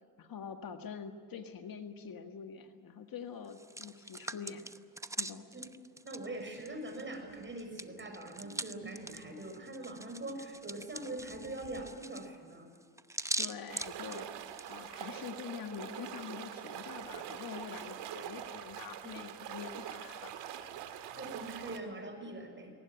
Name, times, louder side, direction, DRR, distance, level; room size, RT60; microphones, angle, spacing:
voice 1, 0.2-4.7 5.2-5.5 13.4-14.3 14.7-20.3, left 7 dB, 55° left, 7 dB, 1.9 m, -45 dB
Hands, 3.4-7.1 7.4-14.7, right 2 dB, 5° right, 0.8 m, -42 dB
voice 2, 6.0-12.7 19.0-19.1 21.2-22.7, right 1 dB, 25° right, 5 dB, 6.7 m, -43 dB
sound 1, 6.2-11.9, right 5 dB, 70° right, 5.4 m, -56 dB
sound 2, 13.7-21.8, right 10 dB, 85° right, 1.9 m, -44 dB
20.5 x 19.0 x 9.4 m, 2.1 s
cardioid pair, 80°, 41 cm